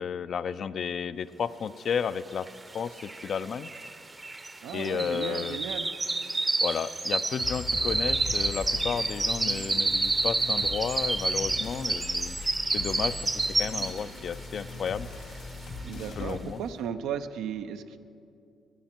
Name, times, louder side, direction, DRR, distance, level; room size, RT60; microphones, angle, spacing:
voice 1, 0.0-2.5 2.7-3.7 4.7-5.6 6.6-12.5 12.7-15.1 16.2-16.6, left 7 dB, 55° left, 15 dB, 0.4 m, -32 dB
sound 1, 2.5-2.6 2.7-14.2 14.6-14.9 15.3-15.4, right 2 dB, 25° right, 0.6 m, -29 dB
voice 2, 4.6-5.9 15.8-18.0, right 8 dB, 90° right, 9 dB, 0.5 m, -35 dB
sound 2, 7.4-16.4, left 2 dB, 80° left, 2.7 m, -40 dB
14.5 x 10.5 x 4.4 m, 2.6 s
cardioid pair, 90°, 0 cm